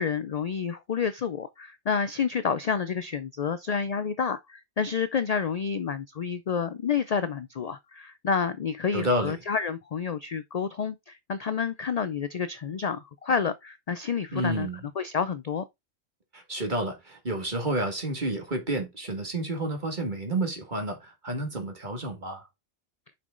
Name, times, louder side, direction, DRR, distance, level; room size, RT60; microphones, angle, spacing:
voice 1, 0.0-14.7 15.0-15.6, left 6 dB, 55° left, 0.4 m, -29 dB
voice 2, 8.9-9.3 14.3-14.8 16.3-22.5, right 1 dB, 45° right, 2.2 m, -30 dB
6.1 x 5.9 x 3.8 m
omnidirectional pair, 1.2 m